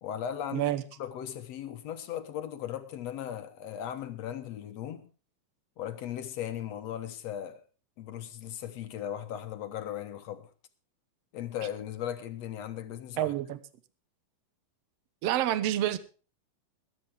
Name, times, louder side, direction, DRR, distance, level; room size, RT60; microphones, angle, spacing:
voice 1, 0.0-0.7 1.0-5.1 5.8-7.6 8.0-10.5 11.3-13.3, left 10 dB, 60° left, 2.0 m, -37 dB
voice 2, 0.5-0.8 13.2-13.6 15.2-16.0, right 13 dB, 65° right, 1.7 m, -28 dB
21.0 x 10.5 x 3.5 m
omnidirectional pair, 4.0 m